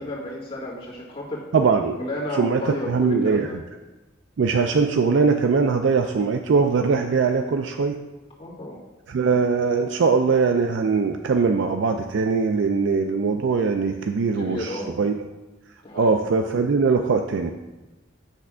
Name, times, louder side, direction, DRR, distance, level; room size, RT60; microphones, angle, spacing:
voice 1, 0.0-1.4 2.0-3.6 8.4-8.8 14.4-15.0 15.8-16.1, left 1 dB, 30° left, -8 dB, 2.1 m, -32 dB
voice 2, 1.5-2.0 2.4-3.5 4.4-8.0 9.1-15.1 15.9-17.5, right 5 dB, 65° right, 5 dB, 0.4 m, -21 dB
8.2 x 3.4 x 6.1 m, 1.1 s
head